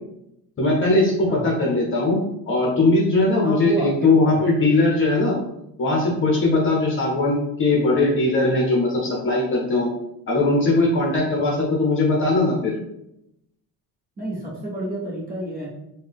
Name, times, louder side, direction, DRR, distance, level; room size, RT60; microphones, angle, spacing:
voice 1, 0.6-2.2 2.5-5.4 5.8-9.9 10.3-12.7, left 2 dB, 35° left, -2 dB, 0.8 m, -20 dB
voice 2, 3.4-4.4 11.4-11.6 14.2-15.7, right 2 dB, 25° right, -4 dB, 0.8 m, -30 dB
3.8 x 2.3 x 3.5 m, 0.83 s
cardioid pair, 180°, 36 cm